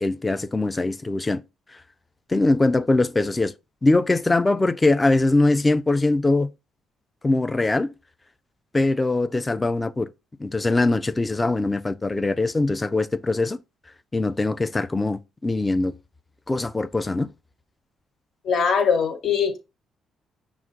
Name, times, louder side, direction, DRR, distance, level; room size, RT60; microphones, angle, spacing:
voice 1, 0.0-1.4 2.3-3.5 3.8-6.5 7.2-7.9 8.7-10.1 10.4-13.6 14.1-15.9 16.5-17.3, left 2 dB, 20° left, 0.4 m, -22 dB
voice 2, 18.4-19.6, left 6 dB, 65° left, 1.4 m, -21 dB
5.9 x 2.4 x 3.8 m
cardioid pair, 90°, 0 cm